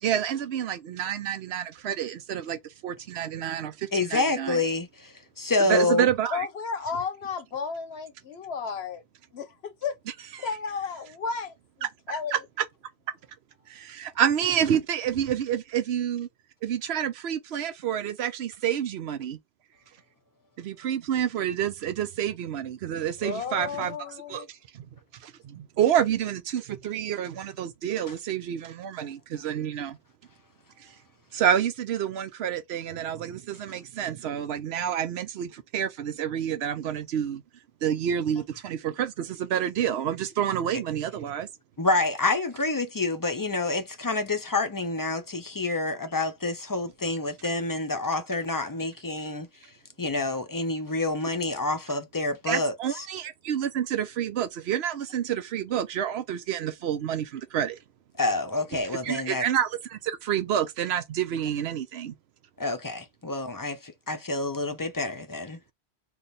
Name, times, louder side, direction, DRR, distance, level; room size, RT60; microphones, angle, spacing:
voice 1, 0.0-4.6 5.7-6.5 10.3-10.5 12.3-12.4 13.7-16.3 16.6-19.4 20.6-24.0 24.3-24.9 25.2-30.0 30.8-30.9 31.3-37.4 37.8-41.5 52.5-57.8 59.0-62.1, right 9 dB, 85° right, 0.9 m, -28 dB
voice 2, 3.9-6.1 41.8-49.5 50.0-52.7 58.2-59.4 62.6-65.6, left 2 dB, 25° left, 0.5 m, -28 dB
voice 3, 6.3-9.0 9.3-9.9 10.4-11.5 12.1-12.4 23.2-24.5, left 5 dB, 85° left, 1.1 m, -33 dB
3.3 x 2.3 x 4.0 m
omnidirectional pair, 1.0 m